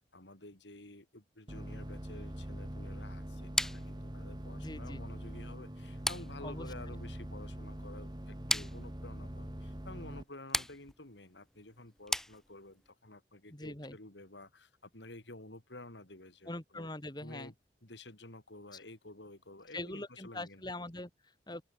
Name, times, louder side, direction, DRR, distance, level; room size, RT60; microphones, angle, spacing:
voice 1, 0.1-16.9 17.2-17.5 17.8-20.6, left 2 dB, 80° left, 3.9 m, -51 dB
sound 1, 1.5-10.2, equal, 25° right, 2.4 m, -43 dB
sound 2, 3.6-12.9, left 1 dB, ahead, 0.5 m, -39 dB
voice 2, 4.6-5.0 6.4-6.7 13.5-14.0 16.5-17.5 19.7-21.6, left 2 dB, 25° left, 2.6 m, -43 dB
open air
head